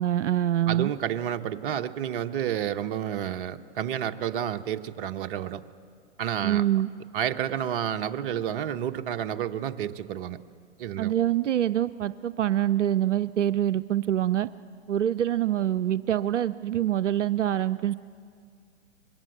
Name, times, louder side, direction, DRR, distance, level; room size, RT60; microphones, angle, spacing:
voice 1, 0.0-0.9 6.4-6.9 11.0-14.5 14.9-17.9, right 12 dB, 85° right, 13 dB, 0.6 m, -25 dB
voice 2, 0.7-5.6 6.2-6.6 7.1-10.4 10.8-11.1, right 10 dB, 50° right, 8 dB, 1.1 m, -30 dB
25.0 x 22.0 x 7.9 m, 2.2 s
hypercardioid pair, 120°, 35 cm